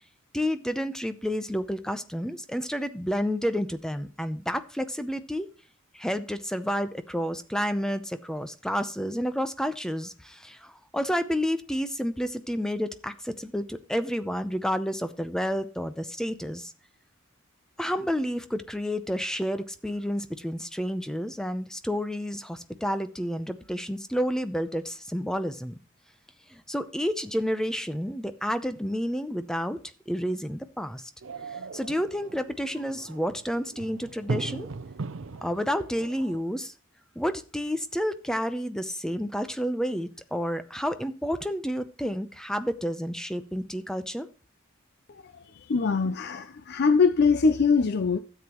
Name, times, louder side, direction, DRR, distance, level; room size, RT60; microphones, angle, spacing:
voice 1, 0.3-5.5 5.9-16.7 17.8-25.7 26.5-29.8 30.1-31.1 31.7-34.7 35.4-36.7 37.2-44.3, equal, 5° left, 0.6 m, -30 dB
sound 1, 31.2-36.4, right 3 dB, 70° right, 0.6 m, -38 dB
voice 2, 45.1-48.2, left 5 dB, 55° left, 0.5 m, -23 dB
13.0 x 8.0 x 3.0 m
head